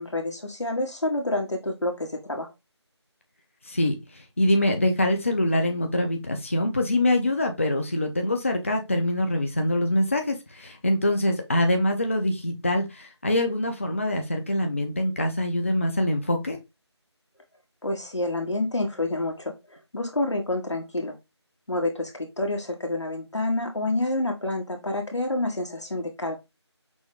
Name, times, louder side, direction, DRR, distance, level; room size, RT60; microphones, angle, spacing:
voice 1, 0.0-2.5 17.8-19.5 19.9-21.1 21.7-26.4, left 2 dB, 80° left, 2 dB, 1.6 m, -28 dB
voice 2, 3.6-16.6, left 1 dB, 30° left, 4 dB, 0.6 m, -24 dB
6.1 x 2.2 x 3.6 m, 0.23 s
figure-of-eight pair, 170°, 15 cm